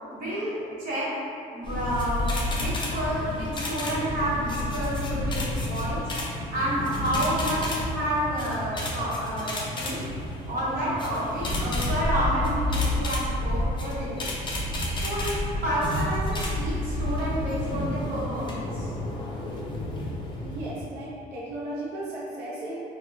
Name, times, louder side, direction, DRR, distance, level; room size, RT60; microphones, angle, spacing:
voice 1, 0.1-1.1 1.5-2.2 2.5-5.4 5.6-6.0 6.5-10.0 10.5-14.3 14.9-15.4 15.6-18.9, equal, 55° right, -8 dB, 0.9 m, -29 dB
sound 1, 1.6-20.7, left 1 dB, 30° left, 0.4 m, -30 dB
sound 2, 11.5-14.8 15.0-15.6 15.9-16.0 16.2-16.3, left 1 dB, 30° right, 0.9 m, -33 dB
voice 2, 20.4-22.8, right 1 dB, 85° right, -6 dB, 0.5 m, -35 dB
2.9 x 2.1 x 2.2 m, 2.5 s
cardioid pair, 110°, 17 cm